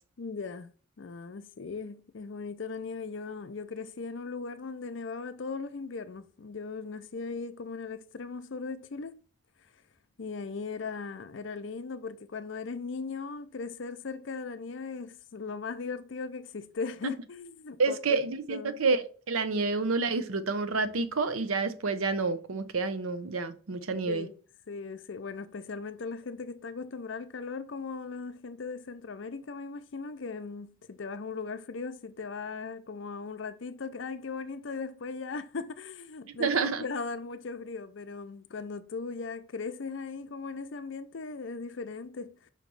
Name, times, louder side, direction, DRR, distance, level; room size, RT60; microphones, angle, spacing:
voice 1, 0.2-9.2 10.2-18.2 18.5-18.8 19.5-19.7 24.1-24.3 24.7-42.5, left 4 dB, 60° left, 0.5 m, -38 dB
voice 2, 17.8-24.3 36.3-36.8, right 4 dB, 85° right, 0.7 m, -29 dB
5.8 x 3.1 x 5.3 m
head